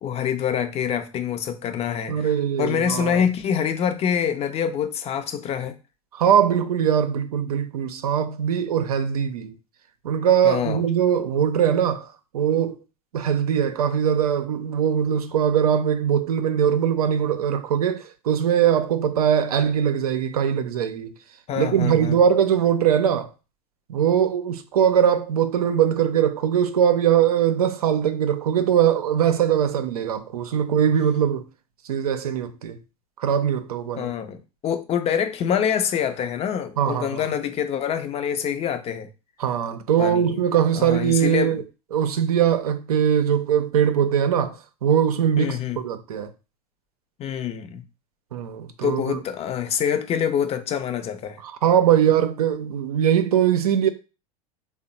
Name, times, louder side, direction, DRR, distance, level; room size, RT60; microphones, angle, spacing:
voice 1, 0.0-5.8 10.4-10.8 21.5-22.2 34.0-39.1 40.0-40.3 40.7-41.6 45.4-45.8 47.2-47.8 48.8-51.4, left 8 dB, 35° left, 0.5 m, -26 dB
voice 2, 2.1-3.2 6.1-9.5 10.0-12.1 12.3-12.8 13.1-21.1 21.6-23.3 23.9-31.5 31.9-32.8 33.2-34.1 36.8-37.2 39.4-41.6 41.9-46.3 48.3-49.2 51.4-53.9, right 9 dB, 85° right, 0.6 m, -21 dB
3.5 x 2.1 x 4.0 m
hypercardioid pair, 90°, 19 cm